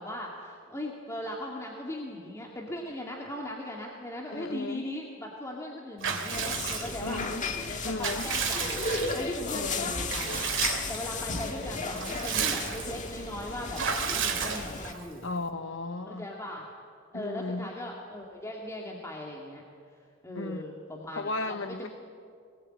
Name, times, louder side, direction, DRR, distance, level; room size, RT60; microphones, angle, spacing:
voice 1, 0.0-7.2 7.9-8.8 9.1-10.4 10.9-13.8 14.1-15.3 16.1-16.7 17.1-19.6 20.2-21.9, left 1 dB, 15° left, 2.2 m, -39 dB
voice 2, 4.3-4.9 7.0-7.4 7.8-8.3 9.5-9.9 15.2-16.3 17.1-17.7 20.4-20.6 21.1-21.9, left 2 dB, 70° left, 1.2 m, -35 dB
Water / Bathtub (filling or washing) / Liquid, 6.0-7.2 7.7-9.4 10.1-11.0 11.4-11.5 11.8-13.0 13.7-15.0, right 7 dB, 65° right, 2.7 m, -32 dB
sound 1, 6.3-14.9, left 3 dB, 40° left, 1.8 m, -34 dB
23.0 x 19.5 x 9.0 m
head